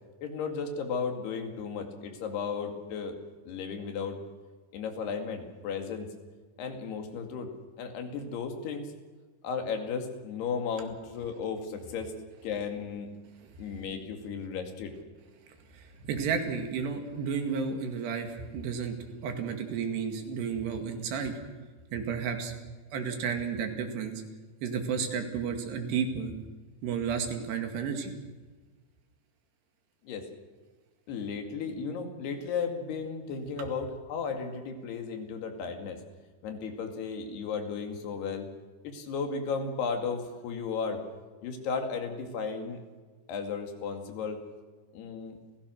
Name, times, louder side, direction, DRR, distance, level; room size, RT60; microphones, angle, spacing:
voice 1, 0.2-3.2 3.5-4.2 4.7-6.1 6.6-7.5 7.8-8.9 9.4-12.1 12.4-13.1 13.6-14.9 30.0-30.3 31.1-36.0 36.4-38.5 38.8-41.0 41.4-42.8 43.3-44.4 44.9-45.3, left 5 dB, 75° left, 4 dB, 4.3 m, -34 dB
voice 2, 15.7-19.0 19.2-21.4 21.9-22.5 22.9-24.2 24.6-26.4 26.8-28.1 33.6-33.7, right 6 dB, 90° right, 5 dB, 4.3 m, -32 dB
29.5 x 16.5 x 6.4 m, 1.4 s
omnidirectional pair, 4.7 m